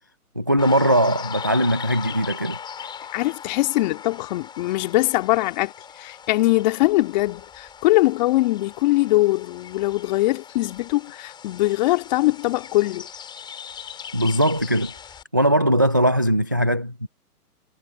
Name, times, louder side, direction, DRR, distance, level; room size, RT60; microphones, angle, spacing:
voice 1, 0.4-2.6 14.1-14.9 15.3-17.1, equal, 15° right, 0.4 m, -20 dB
sound 1, 0.6-15.2, left 7 dB, 10° left, 4.7 m, -39 dB
voice 2, 3.1-13.1, left 18 dB, 30° left, 2.5 m, -22 dB
hypercardioid pair, 150°, 46 cm